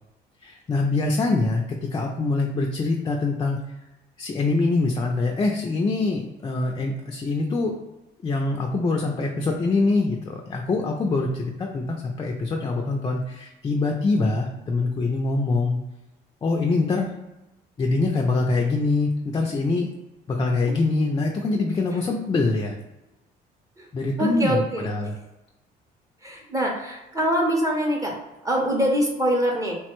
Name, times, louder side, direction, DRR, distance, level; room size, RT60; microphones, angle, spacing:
voice 1, 0.4-3.6 4.2-7.8 8.2-15.8 16.4-17.1 17.8-19.9 20.3-22.8 23.9-25.2, left 3 dB, 25° left, 1 dB, 0.3 m, -24 dB
voice 2, 24.2-24.9 26.2-28.1 28.4-29.8, equal, 20° right, -1 dB, 0.6 m, -24 dB
3.1 x 2.1 x 2.9 m, 0.99 s
cardioid pair, 110°, 17 cm